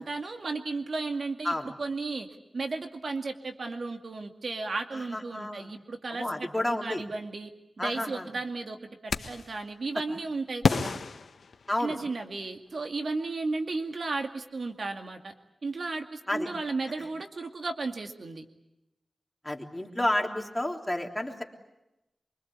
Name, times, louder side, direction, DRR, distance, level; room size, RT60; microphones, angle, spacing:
voice 1, 0.0-2.3 2.5-7.5 7.8-8.8 9.0-11.0 11.8-15.3 15.6-18.4, right 3 dB, 60° right, 5 dB, 2.3 m, -34 dB
voice 2, 4.9-5.7 6.1-7.0 7.8-8.2 11.7-12.0 16.3-16.5 19.4-21.4, left 1 dB, 10° left, 2 dB, 3.4 m, -30 dB
sound 1, 9.1-9.6 10.6-12.2, left 5 dB, 80° left, 1.3 m, -30 dB
25.5 x 24.5 x 8.4 m, 0.91 s
wide cardioid pair, 85°, 0 cm